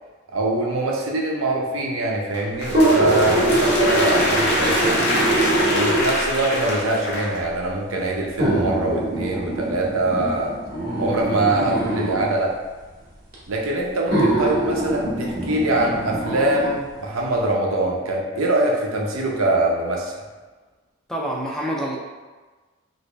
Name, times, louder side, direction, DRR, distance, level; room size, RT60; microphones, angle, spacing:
voice 1, 0.3-5.1 5.7-10.5 11.0-12.5 13.5-20.1, right 2 dB, 80° right, -1 dB, 0.6 m, -23 dB
sound 1, 2.3-7.4, left 1 dB, 55° left, 0.7 m, -24 dB
sound 2, 2.6-6.3 7.2-7.3 8.4-12.3 13.3-13.4 14.1-16.8 17.2-17.3, right 1 dB, 45° right, 0.9 m, -23 dB
voice 2, 21.1-22.0, right 1 dB, ahead, -3 dB, 0.4 m, -26 dB
2.9 x 2.6 x 3.2 m, 1.3 s
head